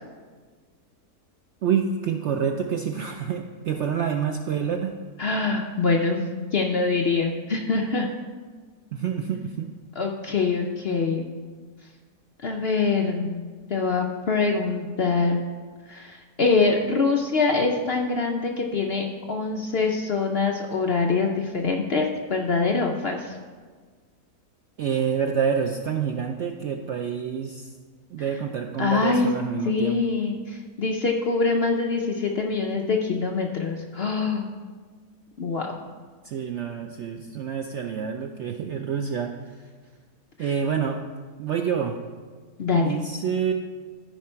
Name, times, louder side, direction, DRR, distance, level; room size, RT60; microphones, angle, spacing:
voice 1, 1.6-5.0 8.9-9.7 24.8-27.7 28.1-30.0 36.2-39.7 40.4-41.0 41.4-42.0 42.7-43.5, right 7 dB, 70° right, 4 dB, 0.6 m, -27 dB
voice 2, 5.2-6.2 6.5-8.1 10.0-11.3 12.4-13.4 13.7-15.4 15.9-23.4 28.8-29.3 29.6-34.5 35.4-35.8 40.4-40.5 42.6-42.9, left 4 dB, 60° left, 1 dB, 0.6 m, -24 dB
13.0 x 5.1 x 4.4 m, 1.5 s
omnidirectional pair, 1.7 m